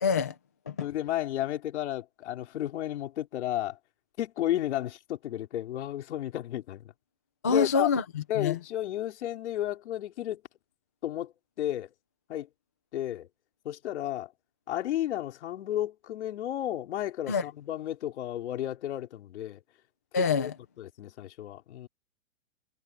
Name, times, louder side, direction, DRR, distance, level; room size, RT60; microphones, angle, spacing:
voice 1, 0.0-0.3 0.7-0.9 7.4-8.6 17.3-17.4 20.1-20.5, left 5 dB, 15° left, 0.3 m, -26 dB
voice 2, 0.8-3.8 4.2-6.8 7.5-7.9 8.3-10.4 11.0-11.9 12.3-12.5 12.9-13.3 13.6-14.3 14.7-19.6 20.1-20.5 20.8-21.9, left 12 dB, 60° left, 4.4 m, -33 dB
hypercardioid pair, 165°, 39 cm